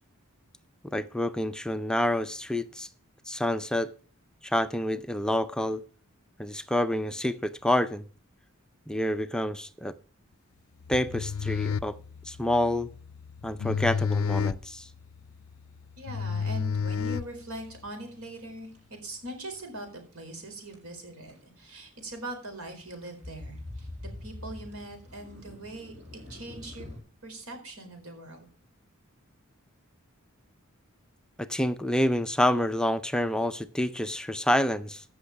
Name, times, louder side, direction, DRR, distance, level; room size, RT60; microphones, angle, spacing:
voice 1, 0.8-2.9 3.3-3.9 4.4-5.8 6.4-8.0 8.9-9.9 10.9-12.0 12.3-12.9 13.4-14.9 31.4-35.0, left 1 dB, 5° left, 0.4 m, -28 dB
sound 1, 10.8-17.8, left 6 dB, 75° left, 0.5 m, -31 dB
voice 2, 16.0-25.9 26.3-26.9 27.2-28.5, right 1 dB, 90° right, 4.4 m, -41 dB
sound 2, 17.2-27.0, left 1 dB, 30° right, 6.1 m, -46 dB
15.0 x 6.3 x 5.8 m
head